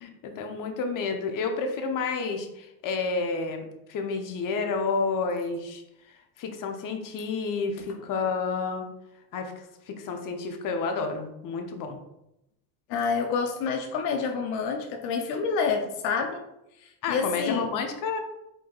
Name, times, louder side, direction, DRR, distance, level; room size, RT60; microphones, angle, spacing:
voice 1, 0.0-3.6 3.9-5.8 6.4-8.9 9.3-12.0 17.0-18.2, left 4 dB, 40° left, 5 dB, 0.9 m, -30 dB
voice 2, 12.9-16.4 17.1-17.7, left 5 dB, 80° left, 4 dB, 0.8 m, -28 dB
4.6 x 4.5 x 2.4 m, 0.86 s
supercardioid pair, 90°, 48 cm